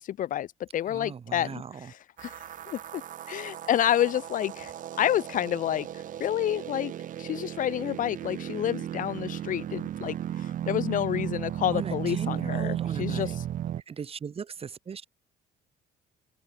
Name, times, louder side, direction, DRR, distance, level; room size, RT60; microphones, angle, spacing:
voice 1, 0.0-2.4 2.7-3.0 3.3-5.9 6.2-6.9 7.2-13.4, left 11 dB, 50° left, 0.6 m, -29 dB
voice 2, 0.9-1.9 11.7-13.4 13.9-15.0, right 6 dB, 35° right, 2.1 m, -38 dB
sound 1, 2.2-13.8, right 11 dB, 50° right, 0.8 m, -35 dB
open air
cardioid pair, 110°, 17 cm